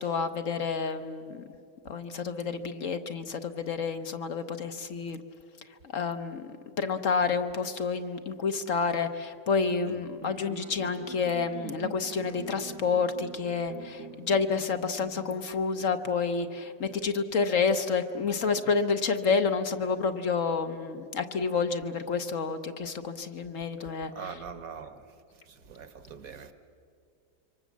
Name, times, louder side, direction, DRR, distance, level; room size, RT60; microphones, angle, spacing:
voice 1, 0.0-1.4 1.8-5.2 5.7-6.5 6.8-24.3, left 5 dB, 55° left, 1.2 m, -29 dB
sound 1, 10.2-15.4, right 7 dB, 80° right, 1.7 m, -45 dB
voice 2, 24.1-25.1 25.4-26.5, right 6 dB, 55° right, 1.7 m, -43 dB
27.0 x 24.5 x 7.4 m
omnidirectional pair, 1.8 m